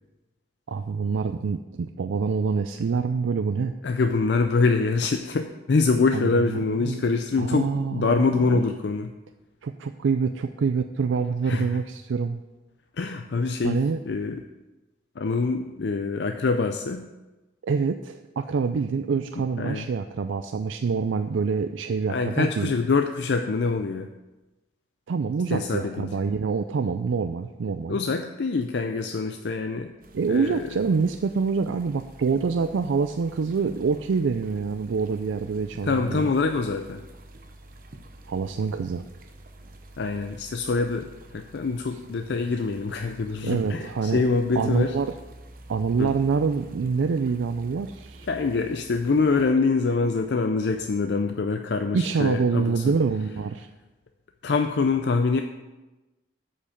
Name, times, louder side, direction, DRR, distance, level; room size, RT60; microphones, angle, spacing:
voice 1, 0.7-3.7 6.1-7.0 7.4-8.6 9.6-12.4 13.6-14.0 17.6-22.7 25.1-28.0 30.1-36.3 38.3-39.0 43.4-44.2 44.6-45.1 45.7-48.3 51.9-53.7, right 5 dB, 90° right, 8 dB, 0.4 m, -26 dB
voice 2, 3.8-9.1 11.5-11.7 13.0-13.8 14.1-14.4 15.2-17.1 19.6-19.8 22.1-24.1 25.5-26.2 27.9-29.9 30.3-30.6 35.8-37.0 40.0-41.1 41.3-44.9 46.0-46.1 48.3-52.9 54.4-55.4, left 4 dB, 65° left, 6 dB, 0.4 m, -25 dB
sound 1, 30.0-49.5, right 2 dB, 50° right, 0.7 m, -48 dB
8.5 x 5.3 x 6.9 m, 1.1 s
head